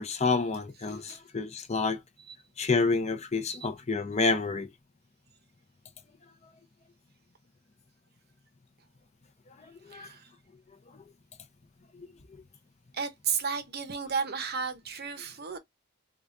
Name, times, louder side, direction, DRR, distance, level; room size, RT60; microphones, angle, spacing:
voice 1, 0.0-2.0 2.6-4.7 9.6-10.1 12.0-12.1, left 4 dB, 30° left, 0.6 m, -29 dB
voice 2, 0.9-1.2 2.3-2.4 3.5-3.6 9.9-10.3 12.9-15.6, right 6 dB, 45° right, 0.7 m, -33 dB
4.9 x 2.3 x 2.5 m
head